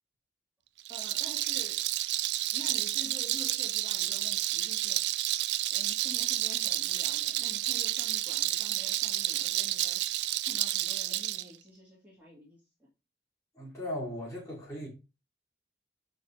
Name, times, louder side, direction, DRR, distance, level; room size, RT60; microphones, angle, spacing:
Rattle, 0.8-11.4, right 15 dB, 70° right, 0.3 m, -30 dB
voice 1, 0.9-1.8 2.5-5.1 5.7-10.0 10.5-12.9, equal, 10° right, 2.0 m, -49 dB
voice 2, 13.5-14.9, left 1 dB, 20° left, 3.3 m, -37 dB
5.3 x 4.5 x 4.5 m
head